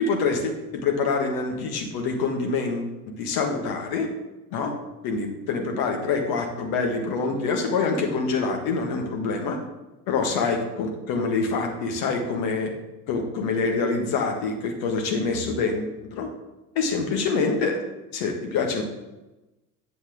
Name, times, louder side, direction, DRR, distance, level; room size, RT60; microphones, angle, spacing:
voice 1, 0.0-2.9 3.2-4.1 4.5-4.7 5.0-9.6 10.1-12.7 13.1-16.3 16.7-17.8 18.1-18.8, left 4 dB, 50° left, 3 dB, 1.6 m, -25 dB
8.4 x 7.0 x 3.7 m, 1.0 s
figure-of-eight pair, 65°, 46 cm